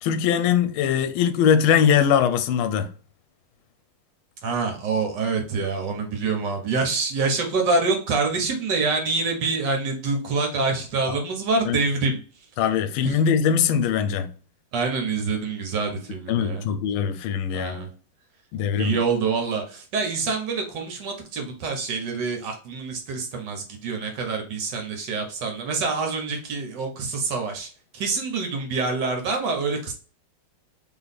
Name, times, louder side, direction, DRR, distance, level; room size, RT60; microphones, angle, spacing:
voice 1, 0.0-2.9 11.7-11.8 12.6-14.3 16.3-17.8 18.5-19.0, left 8 dB, 80° left, 1.4 m, -21 dB
voice 2, 4.4-12.2 13.0-13.1 14.7-16.7 17.5-17.9 18.8-27.7 27.9-29.9, right 4 dB, 60° right, 1.6 m, -26 dB
3.5 x 3.1 x 4.1 m
omnidirectional pair, 2.3 m